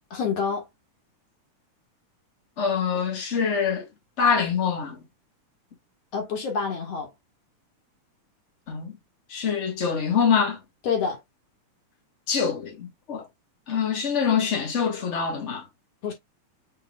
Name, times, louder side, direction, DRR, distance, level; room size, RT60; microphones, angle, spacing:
voice 1, 0.1-0.7 6.1-7.1 10.8-11.2 16.0-16.1, left 6 dB, 60° left, 2.2 m, -27 dB
voice 2, 2.6-3.9 4.2-5.0 8.7-8.9 9.3-10.6 12.3-13.3 13.7-15.6, left 6 dB, 80° left, 0.6 m, -24 dB
6.5 x 3.5 x 2.3 m
omnidirectional pair, 3.6 m